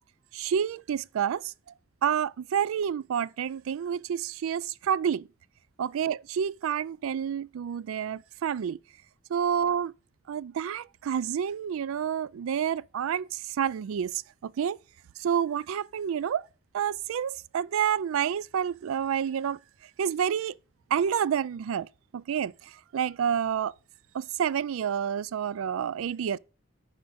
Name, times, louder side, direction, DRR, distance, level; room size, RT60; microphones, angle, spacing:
voice 1, 0.3-1.5 2.0-5.3 5.8-8.8 9.3-9.9 10.3-14.8 15.2-16.5 16.7-19.6 20.0-20.6 20.9-21.9 22.1-23.7 24.1-26.4, right 8 dB, 85° right, 0.3 m, -29 dB
8.1 x 4.7 x 6.2 m
head